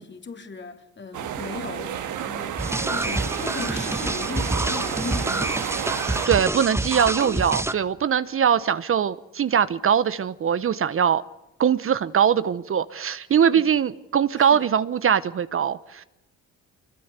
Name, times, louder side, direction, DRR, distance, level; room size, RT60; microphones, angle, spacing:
voice 1, 0.0-5.7 13.5-13.7 14.4-14.7, left 4 dB, 35° left, 3.5 m, -37 dB
sound 1, 1.1-6.3, right 9 dB, 80° right, 2.4 m, -31 dB
sound 2, 2.6-7.7, right 2 dB, 10° right, 1.2 m, -27 dB
voice 2, 6.3-11.2 11.6-16.0, right 8 dB, 45° right, 0.9 m, -22 dB
24.5 x 21.5 x 8.2 m
cardioid pair, 90°, 30 cm